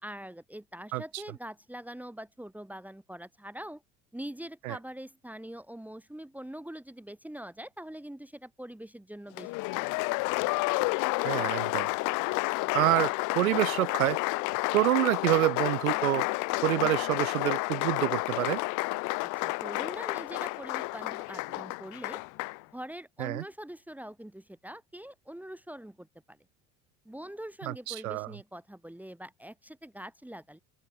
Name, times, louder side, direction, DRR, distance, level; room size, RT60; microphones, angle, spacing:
voice 1, 0.0-3.8 4.1-9.8 19.2-22.2 22.7-26.4 27.1-30.6, right 1 dB, 5° right, 2.2 m, -43 dB
Applause, 9.4-22.6, left 27 dB, 45° left, 0.7 m, -30 dB
voice 2, 11.2-11.9 12.7-14.2 14.7-16.3 16.6-18.6 23.2-23.4 27.6-28.3, right 18 dB, 70° right, 0.5 m, -27 dB
open air
figure-of-eight pair, 70°, 43 cm